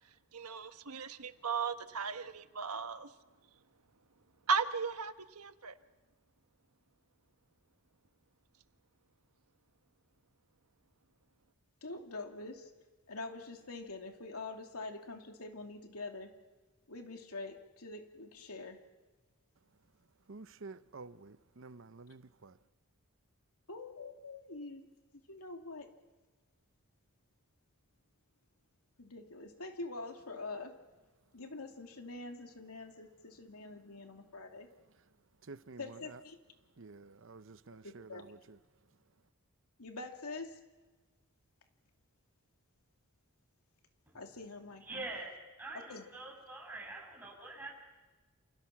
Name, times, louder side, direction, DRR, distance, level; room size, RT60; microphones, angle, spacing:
voice 1, 0.3-3.1 4.5-5.8, right 5 dB, 85° right, 1.3 m, -36 dB
voice 2, 11.8-12.7 13.1-16.3 16.9-18.8 23.7-24.9 25.3-25.9 29.0-30.8 31.3-34.7 35.8-36.4 37.8-38.3 39.8-40.6 44.1-45.1 45.9-46.1, left 3 dB, 85° left, 2.7 m, -45 dB
voice 3, 20.3-22.6 35.4-36.2 36.8-38.6, right 3 dB, 60° right, 0.8 m, -51 dB
voice 4, 44.8-45.3 45.6-47.7, right 2 dB, 10° right, 7.3 m, -44 dB
28.5 x 28.5 x 6.0 m
head